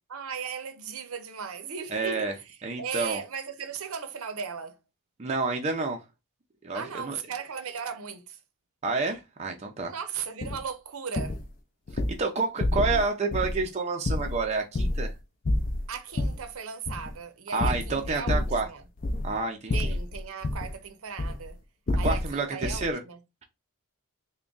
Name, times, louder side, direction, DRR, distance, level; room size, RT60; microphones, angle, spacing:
voice 1, 0.1-2.3 2.8-4.8 6.7-8.4 9.9-11.4 15.9-18.8 19.7-21.6 22.0-23.2, right 6 dB, 65° right, 0.6 m, -37 dB
voice 2, 1.9-2.3 2.6-3.2 5.2-6.0 6.6-7.2 8.8-9.9 12.1-15.1 17.5-18.7 19.2-20.0 22.0-23.0, right 3 dB, 30° right, 0.4 m, -29 dB
sound 1, 10.4-10.6 11.2-11.5 11.9-12.2 12.6-13.0 13.3-13.6 14.1-15.2 15.4-16.4 16.9-17.1 17.6-18.6 19.0-19.4 19.7-20.7 21.2-21.5 21.9-22.3 22.6-22.9, left 1 dB, 40° left, 0.4 m, -28 dB
3.5 x 2.2 x 3.8 m
head